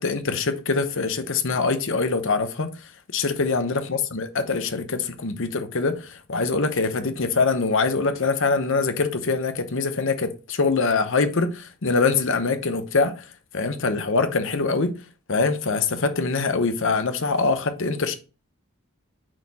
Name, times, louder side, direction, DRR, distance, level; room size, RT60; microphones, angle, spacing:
voice 1, 0.0-2.7 3.1-13.2 13.5-14.9 15.3-18.1, left 4 dB, 60° left, 0.9 m, -24 dB
8.8 x 4.2 x 2.9 m
head